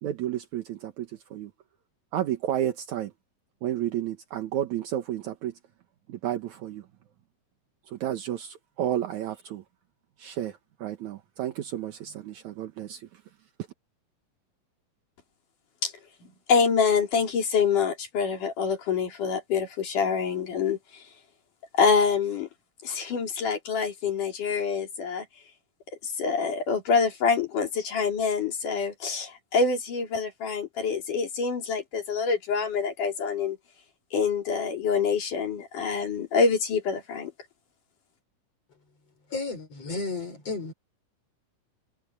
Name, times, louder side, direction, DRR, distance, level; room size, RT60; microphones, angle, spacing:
voice 1, 0.0-1.5 2.1-3.1 3.6-5.5 6.1-6.8 7.9-9.6 10.2-13.1, right 11 dB, 70° right, 2.6 m, -31 dB
voice 2, 16.2-21.0 21.8-22.5 22.8-25.3 26.0-33.6 34.1-37.3, left 5 dB, 90° left, 5.3 m, -26 dB
voice 3, 39.3-40.7, left 3 dB, 50° left, 6.5 m, -33 dB
omnidirectional pair, 3.5 m